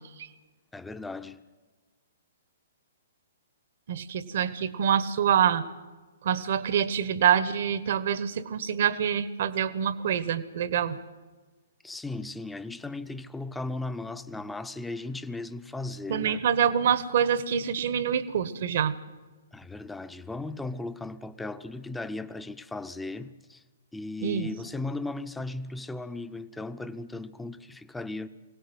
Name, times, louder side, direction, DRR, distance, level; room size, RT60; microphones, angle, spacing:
voice 1, 0.7-1.4 11.8-16.4 19.5-23.6 23.9-28.3, left 2 dB, 5° left, 0.8 m, -36 dB
voice 2, 3.9-5.6 6.2-11.0 16.1-19.0 24.2-24.5, right 8 dB, 55° right, 1.3 m, -26 dB
23.0 x 18.0 x 8.0 m
figure-of-eight pair, 120°, 0 cm